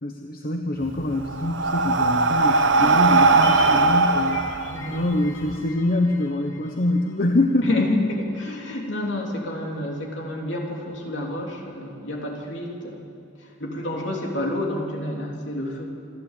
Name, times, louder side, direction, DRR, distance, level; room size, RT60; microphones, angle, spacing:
voice 1, 0.0-4.7 4.9-7.9, left 2 dB, 50° left, 3 dB, 1.1 m, -24 dB
Breathing, 0.8-5.5, right 3 dB, 75° right, 1.0 m, -19 dB
sound 1, 2.7-7.2 7.4-7.5, left 2 dB, 90° left, 2.6 m, -38 dB
voice 2, 4.6-5.0 7.6-13.1 13.4-16.0, left 1 dB, 65° left, 0 dB, 3.3 m, -29 dB
27.0 x 12.0 x 8.4 m, 2.3 s
head